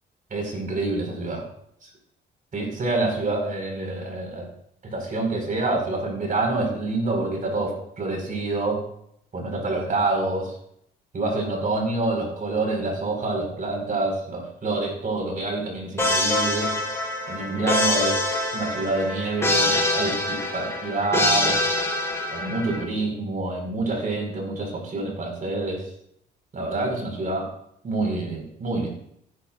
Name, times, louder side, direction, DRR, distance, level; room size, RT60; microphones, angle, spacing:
voice 1, 0.3-1.5 2.5-4.5 4.8-8.8 9.3-10.5 11.1-16.7 17.3-21.6 22.3-25.9 26.5-27.5 27.8-28.9, right 2 dB, 45° right, 1 dB, 4.8 m, -27 dB
sound 1, 16.0-22.8, left 1 dB, 15° left, 3.7 m, -24 dB
15.5 x 10.5 x 2.5 m, 0.71 s
cardioid pair, 90°, 20 cm